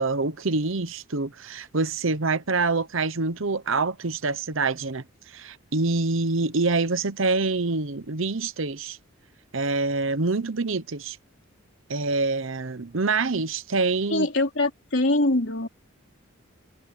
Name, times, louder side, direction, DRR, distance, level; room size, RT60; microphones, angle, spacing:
voice 1, 0.0-5.0 5.3-9.0 9.5-11.2 11.9-14.3, right 3 dB, 70° right, 1.0 m, -26 dB
voice 2, 14.1-15.7, left 2 dB, 55° left, 4.1 m, -23 dB
head